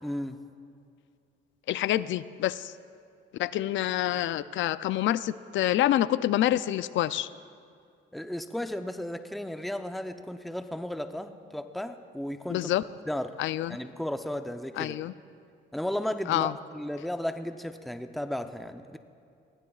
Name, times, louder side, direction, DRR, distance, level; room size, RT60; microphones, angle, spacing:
voice 1, 0.0-0.4 8.1-12.7 13.1-13.3 13.7-15.0 15.7-19.0, left 1 dB, ahead, 8 dB, 0.6 m, -34 dB
voice 2, 1.7-2.7 3.4-7.3 12.5-12.8 13.4-13.8 14.8-15.1 16.3-16.5, left 13 dB, 75° left, 16 dB, 0.4 m, -27 dB
20.5 x 16.0 x 2.4 m, 2.3 s
cardioid pair, 90°, 20 cm